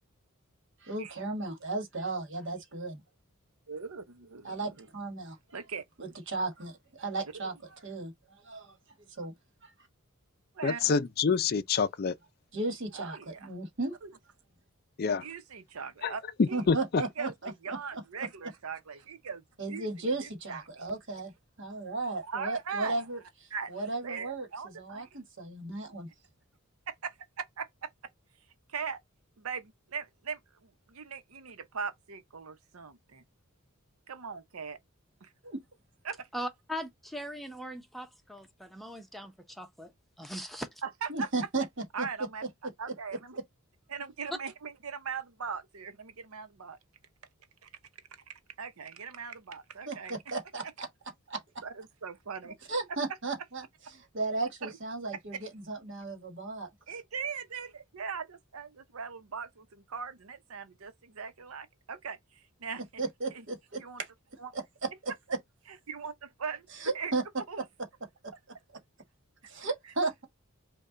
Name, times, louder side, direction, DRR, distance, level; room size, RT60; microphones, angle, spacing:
voice 1, 0.9-3.0 4.4-5.4 6.0-7.5 7.8-8.1 8.4-8.8 9.1-9.3 9.6-9.7 12.5-13.9 16.5-17.8 19.6-21.3 21.6-23.2 23.7-24.5 24.8-26.1 35.4-35.6 41.1-41.6 42.0-42.1 49.9-50.9 51.3-51.4 52.7-53.6 53.9-56.7 63.0-63.8 65.0-65.1 66.8-67.2 68.2-68.3 69.5-70.2, right 3 dB, 60° right, 1.4 m, -35 dB
voice 2, 3.7-4.9 5.5-5.8 7.3-7.5 10.5-11.0 12.9-13.5 14.0-14.1 15.2-16.2 16.5-16.6 17.0-20.9 22.2-23.0 23.5-25.1 26.9-27.9 28.7-29.0 29.4-33.2 34.1-34.8 35.2-35.3 36.0-36.3 40.8-41.3 41.9-42.4 42.8-43.4 43.9-46.8 47.6-47.7 48.1-50.3 51.6-52.6 52.9-53.0 54.6-54.7 55.3-55.5 56.9-63.0 63.3-63.4 63.8-64.0 64.4-64.5 65.7-67.6 69.8-69.9, right 6 dB, 85° right, 0.8 m, -40 dB
voice 3, 10.6-12.1 15.0-15.2 16.0-16.1 16.4-17.0, left 5 dB, 45° left, 0.4 m, -27 dB
voice 4, 36.3-39.9 40.2-40.7, equal, ahead, 0.7 m, -40 dB
5.4 x 2.3 x 3.8 m
head